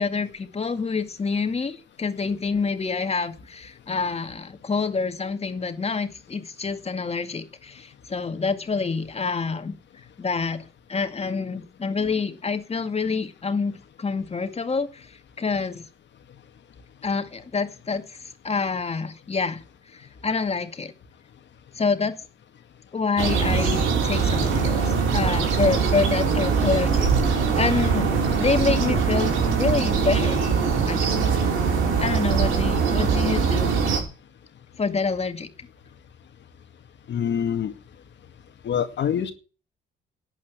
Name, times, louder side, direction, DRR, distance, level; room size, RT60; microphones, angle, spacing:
voice 1, 0.0-9.7 10.2-15.1 15.4-15.9 17.0-18.2 18.4-19.6 19.9-20.9 21.8-22.1 22.9-27.1 27.6-28.1 28.4-29.3 29.6-30.4 30.9-31.2 32.0-33.8 34.8-35.5, left 4 dB, 30° left, 2.1 m, -27 dB
sound 1, 23.2-34.0, right 5 dB, 90° right, 5.8 m, -22 dB
voice 2, 37.1-37.7 38.6-39.3, left 8 dB, 65° left, 2.1 m, -25 dB
12.0 x 8.6 x 8.3 m
cardioid pair, 90°, 20 cm